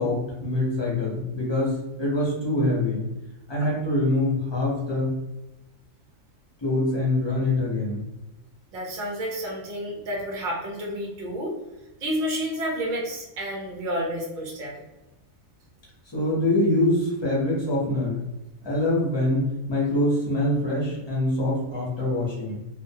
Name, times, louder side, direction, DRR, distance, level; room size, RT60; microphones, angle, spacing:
voice 1, 0.0-3.1 3.5-5.2 6.6-8.0 16.1-18.2 18.6-22.6, left 1 dB, 45° left, -6 dB, 0.3 m, -24 dB
voice 2, 8.7-11.5 12.0-14.9, equal, 50° right, -2 dB, 0.7 m, -30 dB
2.4 x 2.0 x 2.6 m, 0.98 s
omnidirectional pair, 1.4 m